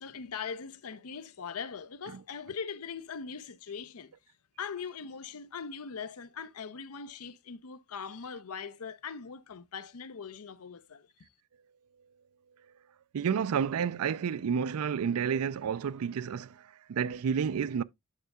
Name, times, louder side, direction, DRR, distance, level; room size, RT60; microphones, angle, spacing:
voice 1, 0.0-4.1 4.6-11.1, left 6 dB, 85° left, 0.7 m, -41 dB
voice 2, 13.1-16.5 16.9-17.8, right 7 dB, 85° right, 0.4 m, -30 dB
9.4 x 6.5 x 2.3 m
head